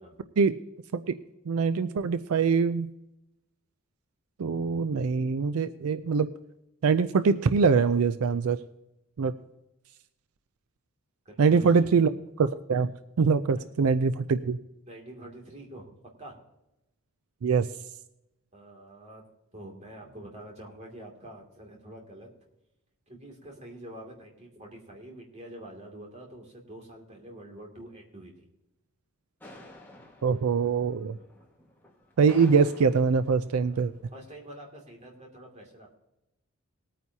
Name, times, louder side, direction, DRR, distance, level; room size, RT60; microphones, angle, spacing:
voice 1, 1.5-2.9 4.4-6.3 6.8-8.6 9.2-9.3 11.4-12.1 12.4-12.9 13.2-14.6 17.4-17.7 30.2-31.2 32.2-33.9, right 5 dB, 80° right, 12 dB, 0.4 m, -23 dB
voice 2, 11.2-11.9 13.5-13.6 14.9-16.4 18.5-19.2 19.5-22.3 23.1-28.3 31.2-31.3 33.5-36.0, right 1 dB, 30° right, -1 dB, 2.5 m, -46 dB
sound 1, 29.4-34.4, left 1 dB, 10° left, 1.6 m, -52 dB
20.0 x 9.1 x 2.8 m, 0.91 s
head